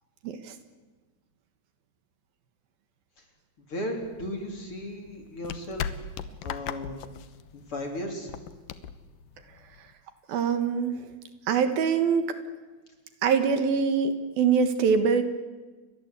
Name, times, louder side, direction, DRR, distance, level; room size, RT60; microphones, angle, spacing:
voice 1, 3.7-5.8 6.4-7.0 7.5-8.3, equal, 35° left, 3 dB, 4.3 m, -35 dB
sound 1, 4.0-9.9, left 8 dB, 70° left, 2.5 m, -39 dB
voice 2, 10.3-10.9 11.5-12.3 13.2-15.2, right 6 dB, 70° right, 9 dB, 3.3 m, -24 dB
30.0 x 23.0 x 8.3 m, 1.3 s
omnidirectional pair, 4.5 m